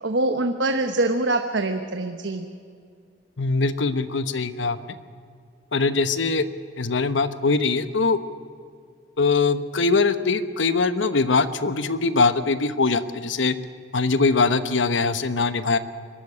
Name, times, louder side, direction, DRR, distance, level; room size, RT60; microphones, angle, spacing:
voice 1, 0.0-2.5, right 2 dB, 75° right, 6 dB, 1.0 m, -24 dB
voice 2, 3.4-4.9 5.7-6.5 6.8-8.2 9.2-13.6 13.9-15.8, left 4 dB, 80° left, 12 dB, 1.0 m, -22 dB
22.0 x 13.0 x 9.8 m, 2.3 s
head